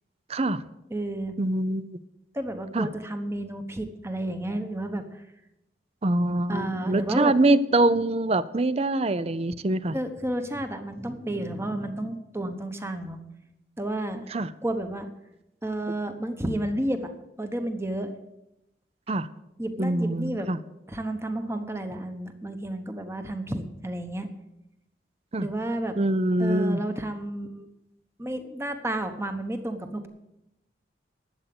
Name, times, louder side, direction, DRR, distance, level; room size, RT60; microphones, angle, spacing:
voice 1, 0.3-0.6 1.4-2.0 2.7-2.9 6.0-9.9 14.3-14.5 19.1-19.3 19.8-20.6 25.3-25.5 26.0-26.8, right 2 dB, 35° right, 15 dB, 0.5 m, -24 dB
voice 2, 0.9-1.4 2.3-5.2 6.5-7.3 9.9-13.2 13.8-14.3 14.6-15.1 15.6-17.1 17.4-18.2 19.6-20.5 20.9-24.3 25.4-26.0 26.4-27.7 28.2-30.1, right 1 dB, 15° right, 7 dB, 1.1 m, -31 dB
12.0 x 8.1 x 7.7 m, 0.90 s
head